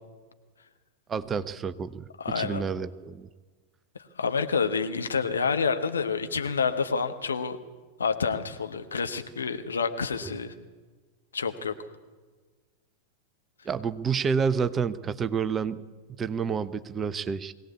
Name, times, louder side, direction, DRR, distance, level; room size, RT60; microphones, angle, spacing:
voice 1, 1.1-2.1 2.3-3.3 13.6-15.8 16.2-17.5, right 6 dB, 20° right, 13 dB, 0.8 m, -29 dB
voice 2, 2.2-2.6 4.2-7.6 8.0-10.5 11.3-11.7, left 5 dB, 70° left, 8 dB, 1.3 m, -28 dB
21.0 x 17.0 x 8.3 m, 1.4 s
figure-of-eight pair, 90°, 0 cm